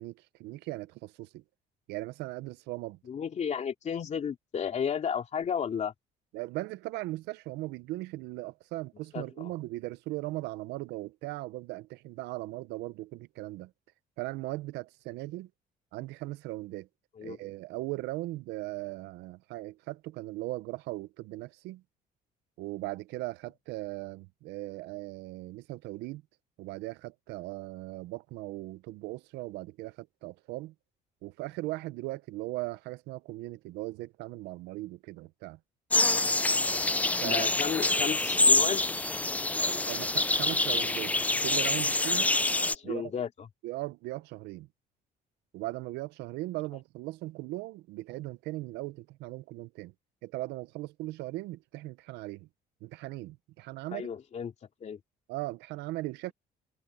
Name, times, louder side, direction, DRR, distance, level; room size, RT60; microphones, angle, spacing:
voice 1, 0.0-1.4 1.9-3.0 6.3-13.7 14.2-15.5 15.9-16.9 17.2-21.8 22.6-26.2 26.6-30.7 31.2-35.6 37.0-37.5 39.5-41.1 41.4-42.4 42.8-43.1 43.6-44.7 45.5-49.9 50.2-52.5 52.8-54.1 55.3-56.3, right 19 dB, 90° right, 0.7 m, -38 dB
voice 2, 3.1-5.9 9.1-9.5 17.2-17.4 37.2-38.8 42.6-43.5 53.9-54.5 54.8-55.0, left 7 dB, 40° left, 2.8 m, -33 dB
sound 1, 35.9-42.7, left 2 dB, 10° left, 0.4 m, -26 dB
cardioid pair, 110°, 17 cm